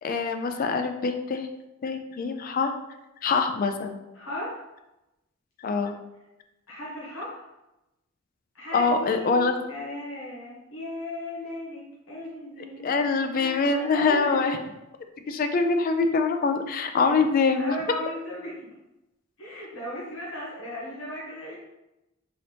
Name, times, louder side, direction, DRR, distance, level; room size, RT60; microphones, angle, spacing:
voice 1, 0.0-1.5 1.8-2.7 3.2-4.0 5.6-5.9 8.7-9.5 12.8-14.6 15.3-17.8, left 4 dB, 45° left, 7 dB, 0.3 m, -24 dB
voice 2, 4.1-4.6 6.7-7.5 8.5-14.5 17.0-17.1 17.6-18.7 19.4-21.6, left 1 dB, 75° left, -6 dB, 1.4 m, -36 dB
3.9 x 2.9 x 3.3 m, 0.96 s
head